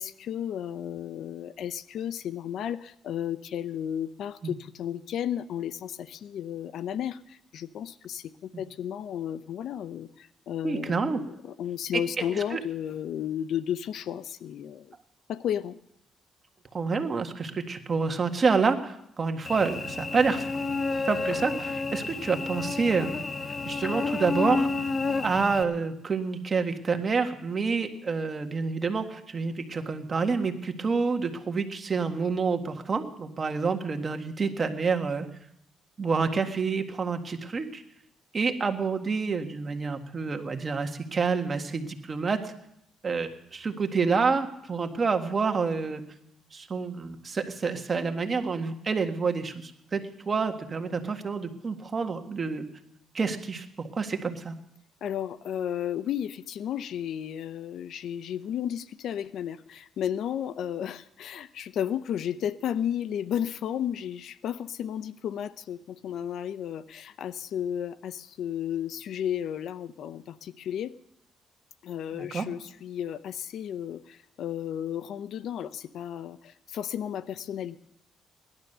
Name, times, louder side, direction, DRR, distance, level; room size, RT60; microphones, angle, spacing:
voice 1, 0.0-15.0 15.3-15.8 55.0-71.0 71.8-77.8, left 9 dB, 75° left, 15 dB, 0.6 m, -33 dB
voice 2, 10.6-11.2 12.3-12.6 16.7-20.5 21.0-23.2 23.6-24.8 25.2-35.3 36.0-37.8 38.3-42.5 43.0-46.0 46.5-52.7 53.1-54.6 72.1-72.5, right 4 dB, 35° right, 5 dB, 1.7 m, -28 dB
Cricket / Buzz, 19.4-25.6, left 3 dB, 35° left, 1.4 m, -30 dB
18.0 x 11.5 x 6.7 m, 0.77 s
cardioid pair, 90°, 0 cm